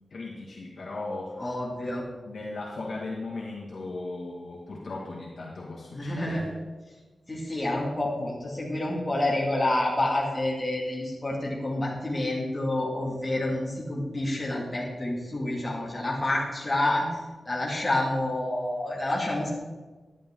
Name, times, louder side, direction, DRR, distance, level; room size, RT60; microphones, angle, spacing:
voice 1, 0.1-1.4 2.2-6.5, left 2 dB, 60° left, -5 dB, 1.7 m, -37 dB
voice 2, 1.4-2.1 5.9-6.5 7.3-19.5, left 1 dB, 20° left, -5 dB, 2.2 m, -28 dB
11.5 x 10.0 x 3.8 m, 1.3 s
wide cardioid pair, 150°, 0 cm